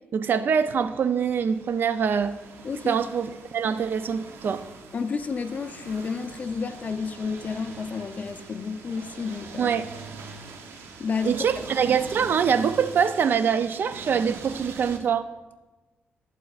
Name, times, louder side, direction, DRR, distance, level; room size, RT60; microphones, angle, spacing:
voice 1, 0.1-2.4 2.9-4.6 9.6-9.9 11.2-15.3, right 7 dB, 55° right, 13 dB, 0.4 m, -24 dB
sound 1, 0.5-15.0, right 5 dB, 80° right, 0.8 m, -43 dB
voice 2, 2.6-3.0 4.9-9.8 10.7-11.5, left 5 dB, 40° left, 9 dB, 0.5 m, -31 dB
11.5 x 7.8 x 2.4 m, 1.2 s
cardioid pair, 110°, 4 cm